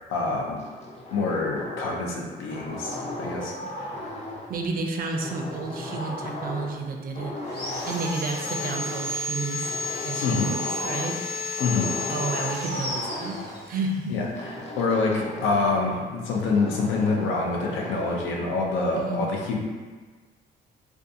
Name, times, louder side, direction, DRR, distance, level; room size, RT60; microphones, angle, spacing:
voice 1, 0.1-0.6 1.1-3.9 10.2-10.5 11.6-11.9 14.1-19.6, left 3 dB, 85° left, -1 dB, 0.5 m, -26 dB
sound 1, 0.6-2.1 2.5-4.6 5.2-6.8 7.1-9.1 9.6-11.2 11.6-13.6 14.4-15.9 16.3-18.4, left 1 dB, 35° left, 0.5 m, -36 dB
voice 2, 4.5-7.4 7.9-9.7 10.0-11.2 12.1-14.4 18.9-19.2, right 3 dB, 50° right, 2 dB, 0.4 m, -31 dB
Sawing, 7.4-13.9, left 3 dB, 55° left, 0.9 m, -32 dB
2.5 x 2.3 x 2.6 m, 1.4 s
cardioid pair, 90°, 20 cm